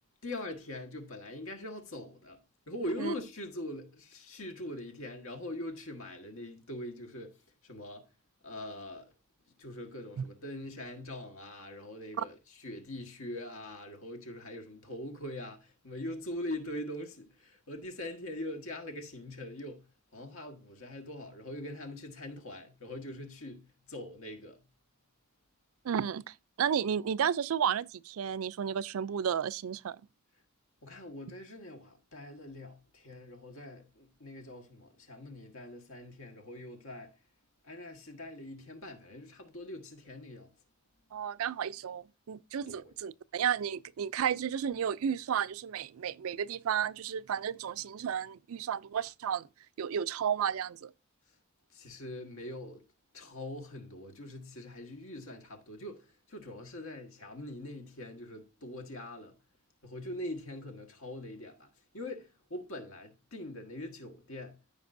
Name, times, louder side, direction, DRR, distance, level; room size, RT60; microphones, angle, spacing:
voice 1, 0.2-2.4 2.7-7.4 7.6-8.1 8.4-9.1 9.6-12.3 12.6-19.8 20.1-23.6 23.9-24.6 30.8-37.1 37.6-40.5 42.7-42.9 51.7-52.8 53.1-59.3 59.8-61.7 61.9-64.5, left 1 dB, 65° left, 1.6 m, -42 dB
voice 2, 25.8-30.0 41.1-49.4 49.8-50.9, right 8 dB, 70° right, 0.4 m, -32 dB
14.0 x 5.3 x 2.6 m
head